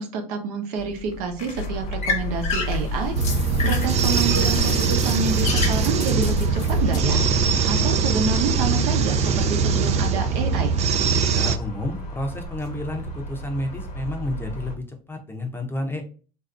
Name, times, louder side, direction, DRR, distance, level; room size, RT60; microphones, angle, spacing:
voice 1, 0.0-10.8, right 4 dB, 70° right, 4 dB, 0.8 m, -28 dB
sound 1, 0.8-7.0, left 4 dB, 40° left, 0.9 m, -32 dB
sound 2, 1.6-14.8, equal, 90° left, 0.9 m, -32 dB
sound 3, 3.1-11.6, right 5 dB, 35° right, 0.4 m, -22 dB
voice 2, 11.3-16.0, left 1 dB, 10° left, 4 dB, 0.7 m, -30 dB
3.2 x 2.6 x 2.5 m, 0.37 s
hypercardioid pair, 85°, 20 cm